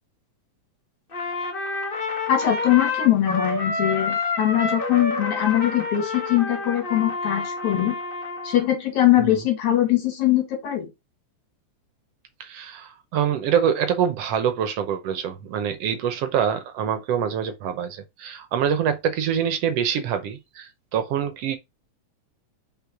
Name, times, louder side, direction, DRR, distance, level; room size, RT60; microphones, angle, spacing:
Trumpet, 1.1-8.7, left 3 dB, 50° left, 0.6 m, -28 dB
voice 1, 2.3-8.0 8.4-10.9, left 13 dB, 75° left, 3.6 m, -21 dB
voice 2, 12.4-21.6, right 8 dB, 70° right, 1.6 m, -25 dB
5.5 x 4.5 x 4.6 m
omnidirectional pair, 3.4 m